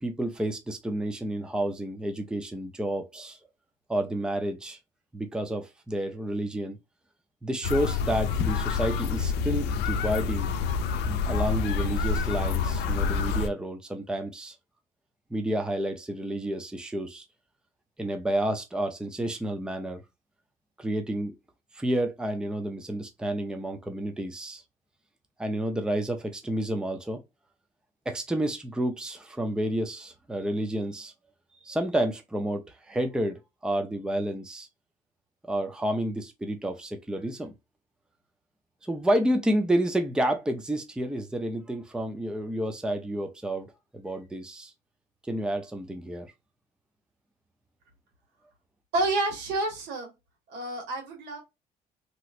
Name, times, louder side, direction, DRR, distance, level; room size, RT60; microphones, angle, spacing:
voice 1, 0.0-3.4 3.9-4.8 5.1-6.8 7.4-10.5 11.1-14.6 15.3-17.2 18.0-20.0 20.8-21.3 21.7-24.6 25.4-27.2 28.1-31.1 31.6-34.7 35.5-37.5 38.8-44.7 45.3-46.3, right 1 dB, 5° right, 0.5 m, -30 dB
sound 1, 7.6-13.5, left 5 dB, 85° left, 0.5 m, -27 dB
voice 2, 48.9-50.1 50.5-51.4, right 2 dB, 85° right, 1.8 m, -29 dB
3.1 x 2.9 x 2.4 m
cardioid pair, 110°, 17 cm